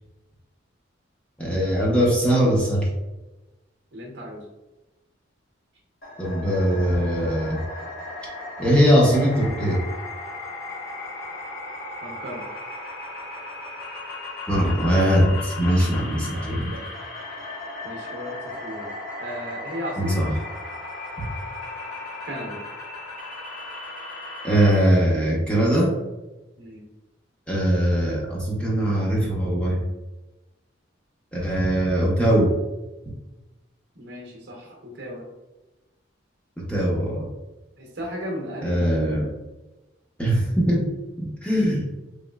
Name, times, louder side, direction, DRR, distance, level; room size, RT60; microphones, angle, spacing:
voice 1, 1.4-2.9 6.2-7.6 8.6-9.8 14.4-16.7 20.0-20.3 24.4-25.9 27.5-29.8 31.3-32.5 36.7-37.3 38.6-39.3 40.2-40.9 41.4-41.8, equal, 5° left, -5 dB, 0.7 m, -21 dB
voice 2, 3.9-4.5 12.0-12.4 16.2-16.9 17.8-18.9 19.2-20.2 22.2-22.6 26.6-26.9 33.9-35.2 37.8-38.9, equal, 60° right, 0 dB, 0.7 m, -35 dB
sound 1, 6.0-24.8, left 2 dB, 50° left, 1.0 m, -36 dB
3.1 x 2.9 x 2.2 m, 1.0 s
head